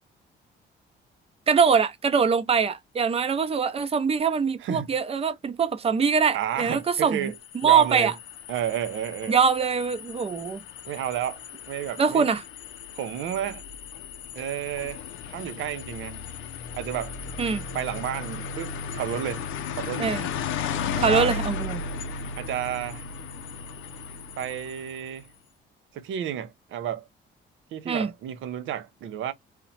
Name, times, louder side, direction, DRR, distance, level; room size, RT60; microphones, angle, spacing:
voice 1, 1.5-7.3 7.6-8.1 9.3-10.6 12.0-12.4 17.4-17.6 20.0-20.3 21.0-21.8 27.9-28.1, right 6 dB, 30° right, 0.6 m, -23 dB
voice 2, 6.3-7.4 7.6-8.1 8.5-9.4 10.9-11.4 11.7-12.3 12.9-13.6 14.3-15.0 15.3-16.3 16.7-17.2 17.7-19.4 19.7-20.2 20.9-21.4 22.4-23.0 24.4-25.3 25.9-27.1 27.7-29.3, right 10 dB, 80° right, 0.6 m, -31 dB
sound 1, 6.7-25.2, left 5 dB, 90° left, 0.5 m, -35 dB
2.8 x 2.1 x 4.0 m
cardioid pair, 90°, 20 cm